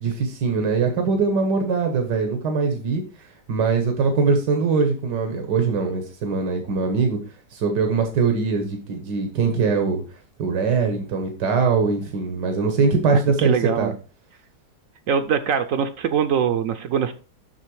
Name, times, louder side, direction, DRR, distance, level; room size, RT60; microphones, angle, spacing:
voice 1, 0.0-7.2 7.5-10.0 10.4-13.9, right 4 dB, 85° right, 4 dB, 1.8 m, -22 dB
voice 2, 13.1-14.0 15.1-17.1, right 7 dB, 65° right, 10 dB, 0.9 m, -23 dB
7.5 x 6.4 x 4.7 m, 0.35 s
omnidirectional pair, 1.8 m